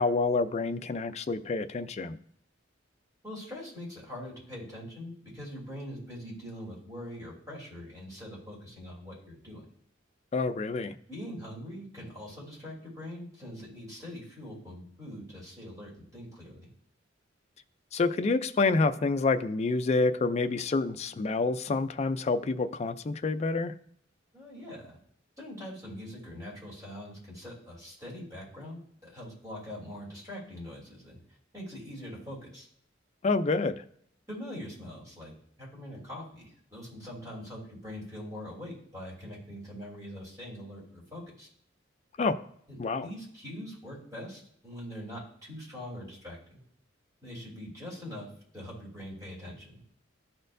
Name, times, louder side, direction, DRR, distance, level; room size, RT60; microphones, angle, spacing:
voice 1, 0.0-2.2 10.3-10.9 17.9-23.7 33.2-33.8 42.2-42.4 42.8-43.1, left 3 dB, 35° left, 9 dB, 0.4 m, -28 dB
voice 2, 3.2-9.6 11.1-16.7 24.3-25.0 25.4-31.2 31.5-32.6 34.3-41.5 42.7-46.6 47.2-48.3 48.5-49.8, equal, 20° right, -5 dB, 3.3 m, -43 dB
12.5 x 4.3 x 2.6 m, 0.66 s
head